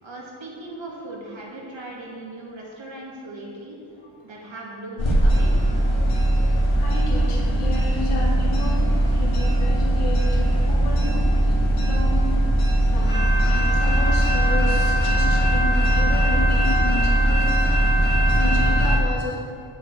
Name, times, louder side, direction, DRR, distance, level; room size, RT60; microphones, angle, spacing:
voice 1, 0.0-3.8 4.2-5.5, right 2 dB, 60° right, -3 dB, 2.4 m, -38 dB
sound 1, 5.0-19.0, right 1 dB, 70° left, 2.2 m, -19 dB
voice 2, 6.8-12.3 12.9-19.4, left 2 dB, 85° left, -4 dB, 2.0 m, -32 dB
9.3 x 5.4 x 8.1 m, 2.5 s
wide cardioid pair, 135°, 50 cm